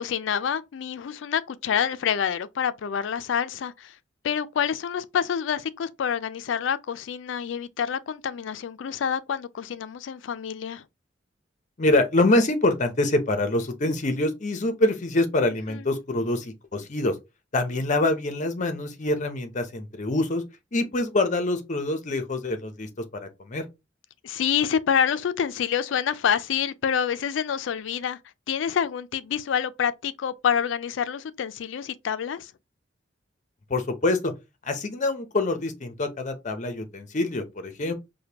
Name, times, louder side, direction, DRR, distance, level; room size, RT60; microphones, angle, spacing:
voice 1, 0.0-3.9 4.2-10.8 15.7-15.8 24.2-28.2 28.5-32.5, left 8 dB, 85° left, 0.4 m, -27 dB
voice 2, 11.8-17.1 17.5-20.4 20.7-23.6 33.7-34.3 34.6-37.9, left 2 dB, 40° left, 0.7 m, -25 dB
5.0 x 2.2 x 2.8 m
head